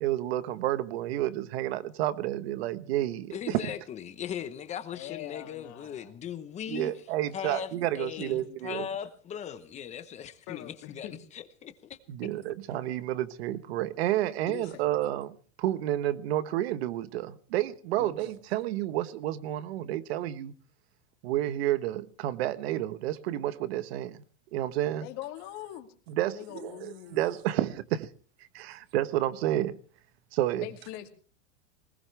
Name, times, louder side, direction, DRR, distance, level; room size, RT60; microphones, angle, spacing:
voice 1, 0.0-3.7 6.7-8.9 12.1-20.5 21.2-24.2 24.5-25.1 26.1-28.1 28.5-29.8 30.3-30.7, right 13 dB, 60° right, 1.3 m, -30 dB
voice 2, 3.3-6.9 7.3-12.0, left 9 dB, 20° left, 1.0 m, -39 dB
voice 3, 4.9-6.2 8.2-8.6 10.5-11.2 12.2-12.3 14.5-14.9 18.0-18.4 25.0-25.9 26.2-27.2 30.6-31.1, left 13 dB, 40° left, 2.5 m, -42 dB
20.0 x 20.0 x 3.4 m
supercardioid pair, 155°, 35 cm